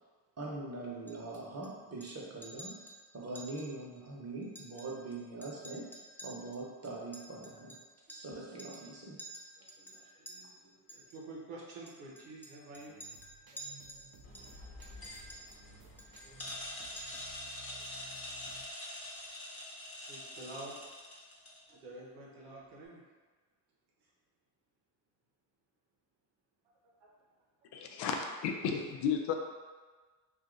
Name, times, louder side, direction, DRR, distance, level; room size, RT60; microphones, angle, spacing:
voice 1, 0.4-2.8 3.1-5.9 6.2-7.8 8.1-9.2, right 2 dB, 35° right, -3 dB, 1.0 m, -42 dB
Chink clink, 1.1-1.7 2.0-2.2 2.4-3.0 3.4-3.7 4.0-4.1 4.4-5.2 5.4-8.3 8.6-8.9 9.2-10.4 10.9-11.2 11.9-14.1 14.3-15.7 16.0-16.7 17.0-17.4, right 1 dB, 5° left, 0.5 m, -50 dB
voice 2, 9.6-13.0 13.5-13.6 14.6-14.7 15.0-15.1 16.2-16.4 17.7-17.8 19.2-19.4 20.1-20.7 21.7-23.0 27.0-27.1 27.9-28.0, right 2 dB, 85° right, -4 dB, 0.9 m, -50 dB
sound 1, 12.8-18.6, right 4 dB, 50° right, 0.7 m, -58 dB
sound 2, 14.2-21.7, left 1 dB, 30° left, 1.1 m, -45 dB
voice 3, 27.7-29.3, left 6 dB, 60° left, 3 dB, 0.6 m, -33 dB
2.6 x 2.5 x 3.8 m, 1.4 s
hypercardioid pair, 55°, 46 cm